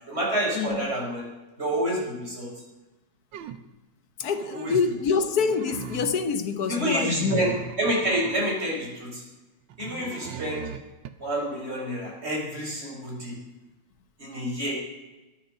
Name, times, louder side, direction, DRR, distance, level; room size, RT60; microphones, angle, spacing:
voice 1, 0.1-1.3 1.6-2.5 4.4-4.8 6.7-9.2 9.8-10.6 11.2-13.4 14.2-14.7, right 1 dB, 30° right, 5.4 m, -28 dB
sound 1, 3.3-3.7 4.2-5.0 5.3-6.3 6.7-8.6 9.7-11.1, right 8 dB, 85° right, 1.5 m, -38 dB
voice 2, 4.2-7.5, left 5 dB, 60° left, 1.4 m, -26 dB
22.0 x 7.4 x 6.4 m
omnidirectional pair, 2.0 m